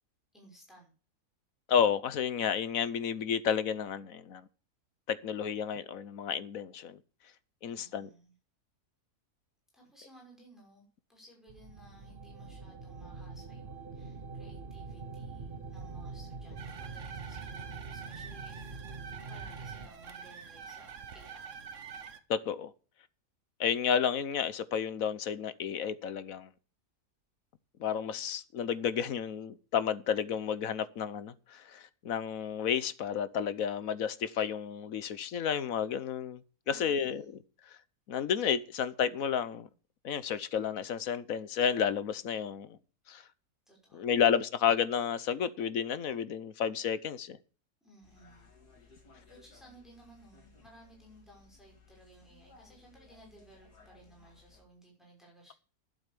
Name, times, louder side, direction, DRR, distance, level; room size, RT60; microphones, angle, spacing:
voice 1, 0.3-0.9 7.7-8.3 9.7-19.0 19.3-21.7 36.6-37.3 43.7-44.4 47.8-48.5 49.3-55.5, right 1 dB, ahead, 5.8 m, -58 dB
voice 2, 1.7-4.5 5.1-7.0 7.6-8.1 22.3-22.7 23.6-26.5 27.8-36.4 36.7-37.2 38.1-39.7 40.0-42.8 43.1-43.2 43.9-47.4, left 8 dB, 65° left, 1.2 m, -31 dB
sound 1, 11.5-19.9, right 4 dB, 40° right, 1.4 m, -44 dB
sound 2, 16.6-22.2, right 6 dB, 55° right, 1.4 m, -46 dB
sound 3, 48.0-54.6, left 4 dB, 85° left, 3.4 m, -60 dB
12.0 x 8.1 x 6.7 m
omnidirectional pair, 1.7 m